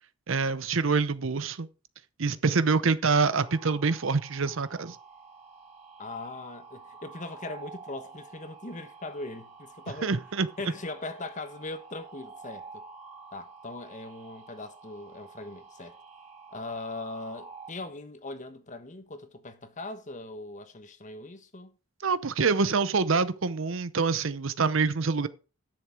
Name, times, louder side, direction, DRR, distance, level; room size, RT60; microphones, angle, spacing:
voice 1, 0.3-1.7 2.2-5.0 10.0-10.5 22.0-25.3, right 4 dB, 65° right, 0.7 m, -26 dB
sound 1, 3.1-17.7, right 4 dB, 30° right, 2.5 m, -49 dB
voice 2, 6.0-10.1 10.6-12.8 13.3-16.0 16.5-21.8, left 2 dB, 35° left, 1.2 m, -40 dB
10.5 x 6.8 x 4.8 m
head